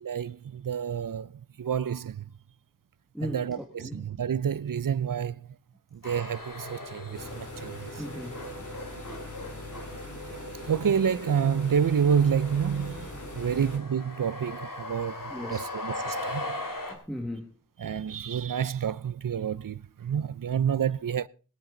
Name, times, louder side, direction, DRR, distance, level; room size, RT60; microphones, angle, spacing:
voice 1, 0.0-2.2 3.2-5.5 5.9-8.0 10.7-16.6 17.8-21.3, right 7 dB, 85° right, 0.5 m, -29 dB
voice 2, 3.1-4.1 8.0-8.7 13.5-13.6 15.3-15.7 16.9-17.5, equal, ahead, 1.7 m, -38 dB
sound 1, 6.0-7.7 8.0-16.9, left 2 dB, 85° left, 2.7 m, -40 dB
sound 2, 7.1-13.8, left 1 dB, 65° left, 3.2 m, -41 dB
21.5 x 9.0 x 3.8 m
wide cardioid pair, 50°, 32 cm